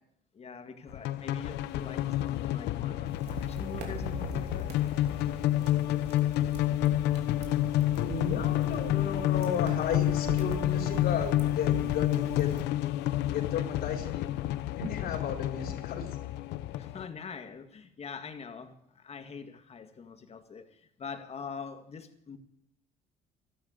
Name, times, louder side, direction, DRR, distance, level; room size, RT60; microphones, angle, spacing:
voice 1, 0.3-4.8 16.8-22.4, left 6 dB, 40° left, 7 dB, 1.9 m, -44 dB
sound 1, 0.9-17.1, left 14 dB, 90° left, 0.8 m, -29 dB
sound 2, 3.1-12.6, right 5 dB, 85° right, 2.9 m, -42 dB
voice 2, 8.0-12.5 13.3-14.3 14.7-16.1, left 6 dB, 70° left, 1 dB, 4.4 m, -34 dB
13.0 x 11.5 x 8.1 m, 0.77 s
cardioid pair, 110°, 17 cm